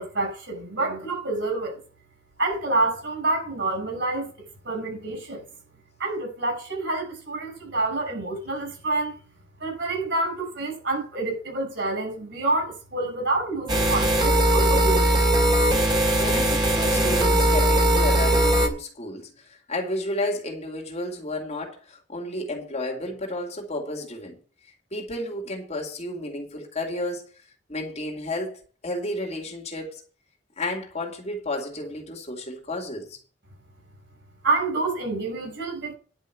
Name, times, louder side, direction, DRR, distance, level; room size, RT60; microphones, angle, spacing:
voice 1, 0.0-1.8 2.4-4.3 4.6-5.4 6.0-9.1 9.6-15.0 34.4-35.9, right 2 dB, 85° right, 6.6 m, -27 dB
sound 1, 13.7-18.7, right 1 dB, 25° right, 2.7 m, -20 dB
voice 2, 16.2-24.3 24.9-27.2 27.7-28.5 28.8-30.0 30.6-33.2, left 1 dB, 35° left, 2.6 m, -32 dB
10.5 x 5.6 x 8.3 m
head